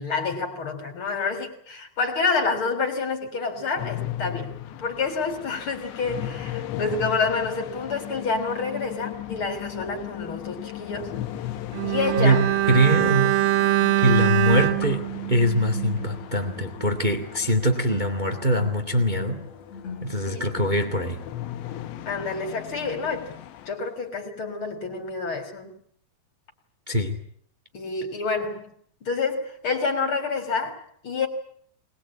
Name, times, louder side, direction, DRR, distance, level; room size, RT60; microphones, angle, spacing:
voice 1, 0.0-4.5 4.8-11.1 11.8-12.4 20.3-20.5 22.1-23.3 23.7-25.7 27.7-28.7 29.0-31.3, left 4 dB, 30° left, 3.7 m, -28 dB
sound 1, 3.8-23.7, left 12 dB, 85° left, 3.4 m, -37 dB
sound 2, 11.0-11.1 12.4-23.5 23.8-24.1, left 6 dB, 45° left, 3.6 m, -43 dB
Bowed string instrument, 11.7-16.2 16.4-16.6, right 15 dB, 70° right, 3.0 m, -23 dB
voice 2, 12.2-13.4 14.0-15.0 15.3-19.4 20.0-21.2 26.9-27.2, right 1 dB, 30° right, 0.8 m, -22 dB
23.0 x 21.0 x 8.7 m
omnidirectional pair, 5.0 m